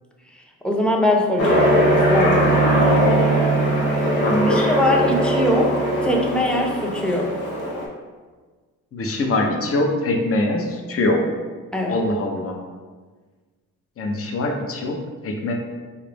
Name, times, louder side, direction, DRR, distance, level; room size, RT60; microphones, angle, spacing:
voice 1, 0.6-1.8 2.1-2.7 4.5-7.3 11.7-12.0, left 1 dB, 5° left, 0 dB, 0.6 m, -22 dB
Aircraft, 1.4-7.8, right 1 dB, 90° left, 0.9 m, -19 dB
voice 2, 4.2-4.7 8.9-11.2 11.9-12.5 14.0-15.0 15.2-15.5, left 2 dB, 40° left, 2 dB, 0.6 m, -23 dB
4.0 x 2.4 x 3.4 m, 1.4 s
cardioid pair, 65°, 35 cm